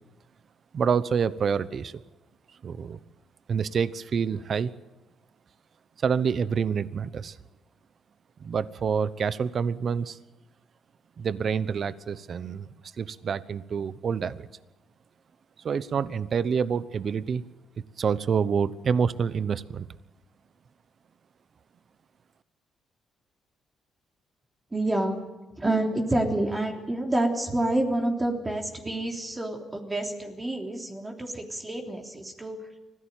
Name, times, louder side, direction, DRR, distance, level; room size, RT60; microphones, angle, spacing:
voice 1, 0.7-1.9 2.6-3.0 3.5-4.7 6.0-7.4 8.4-10.2 11.2-12.7 13.0-14.5 15.6-17.4 18.0-19.9, right 6 dB, 50° right, 16 dB, 1.0 m, -27 dB
voice 2, 24.7-25.2 25.6-32.6, right 1 dB, 20° right, 2 dB, 3.4 m, -28 dB
25.0 x 16.5 x 9.1 m, 1.0 s
cardioid pair, 90°, 0 cm